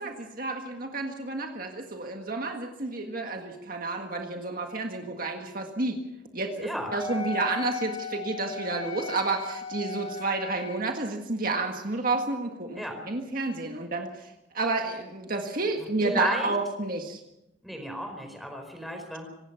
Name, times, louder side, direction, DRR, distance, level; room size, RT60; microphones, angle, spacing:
voice 1, 0.0-6.0 6.3-17.2, right 3 dB, 50° right, 3 dB, 1.8 m, -30 dB
voice 2, 6.6-6.9 12.8-13.0 16.0-16.5 17.6-19.3, equal, ahead, 4 dB, 4.5 m, -33 dB
Wind instrument woodwind instrument, 7.0-10.9, left 5 dB, 35° left, 4.0 m, -37 dB
25.0 x 18.5 x 5.8 m, 0.91 s
head